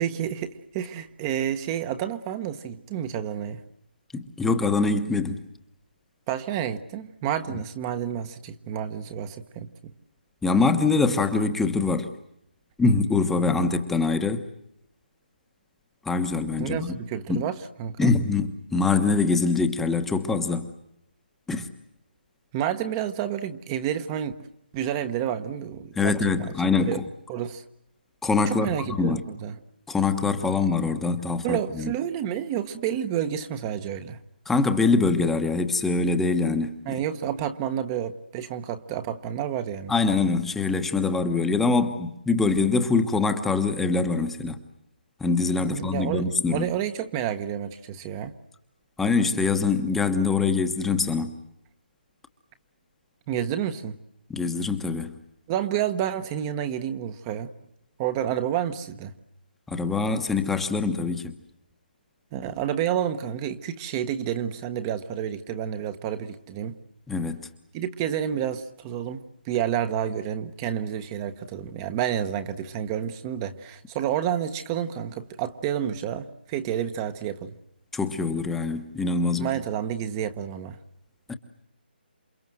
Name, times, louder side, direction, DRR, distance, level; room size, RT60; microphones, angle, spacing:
voice 1, 0.0-3.6 6.3-9.7 16.6-18.1 22.5-24.5 24.7-26.5 26.8-27.0 27.3-27.6 28.5-29.5 31.4-34.2 36.9-39.9 45.6-48.3 53.3-54.0 55.5-57.5 58.0-59.1 62.3-66.8 67.7-77.5 79.4-80.8, right 10 dB, 20° right, 10 dB, 1.2 m, -29 dB
voice 2, 4.1-5.4 10.4-12.1 12.8-14.5 16.0-16.9 17.3-17.4 18.0-20.7 21.5-21.7 26.0-27.0 28.2-29.2 29.9-31.9 34.4-37.0 39.9-44.6 45.2-46.7 49.0-51.3 54.3-55.1 59.7-61.3 67.1-67.5 77.9-79.5 81.3-81.4, left 4 dB, 5° left, 7 dB, 1.2 m, -24 dB
28.5 x 25.0 x 7.8 m, 0.79 s
hypercardioid pair, 165°, 6 cm